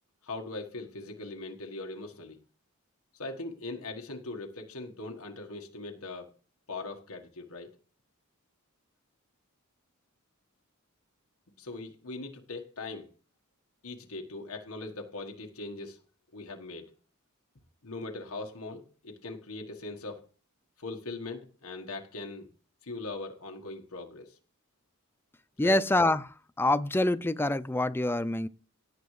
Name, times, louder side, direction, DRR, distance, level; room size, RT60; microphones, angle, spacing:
voice 1, 0.2-2.4 3.1-6.3 6.7-7.7 11.6-13.1 13.8-16.0 16.3-16.9 17.8-20.3 20.8-22.5 22.8-24.4 25.6-25.8, left 2 dB, 80° left, 1.5 m, -40 dB
voice 2, 25.6-28.5, left 2 dB, 10° left, 0.4 m, -26 dB
17.5 x 8.2 x 3.2 m
head